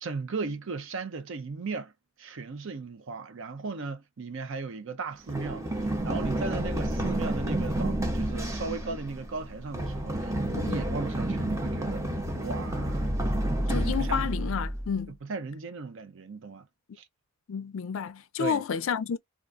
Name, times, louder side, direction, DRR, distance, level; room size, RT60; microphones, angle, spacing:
voice 1, 0.0-1.9 2.2-13.0 13.7-14.4 15.2-16.6 17.0-17.1 18.4-18.6, right 4 dB, 60° right, 0.5 m, -37 dB
Run, 5.3-15.0, right 1 dB, 15° right, 0.7 m, -30 dB
voice 2, 13.7-15.1 17.5-19.2, left 7 dB, 60° left, 0.4 m, -30 dB
3.7 x 2.4 x 2.4 m
head